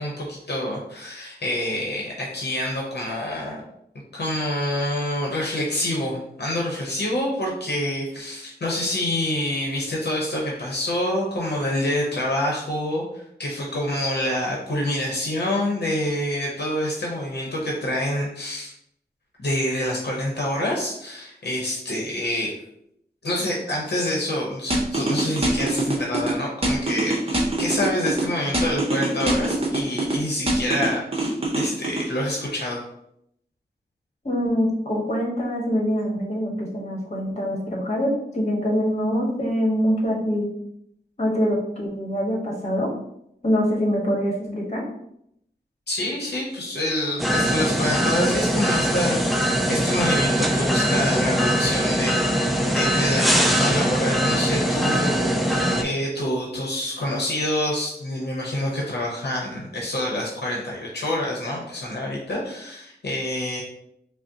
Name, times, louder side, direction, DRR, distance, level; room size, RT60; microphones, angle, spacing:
voice 1, 0.0-3.6 4.1-18.7 19.4-22.5 23.2-32.8 45.9-63.6, left 1 dB, 75° left, -3 dB, 0.8 m, -27 dB
sound 1, 24.7-26.3 26.6-28.2 28.5-30.2 30.5-32.1, right 2 dB, 35° right, 0.7 m, -24 dB
voice 2, 34.2-40.5 41.2-42.9 43.4-44.8, equal, 40° left, -2 dB, 1.2 m, -24 dB
sound 2, 47.2-55.8, equal, ahead, 0.4 m, -22 dB
5.1 x 2.0 x 2.8 m, 0.75 s
wide cardioid pair, 80°, 17 cm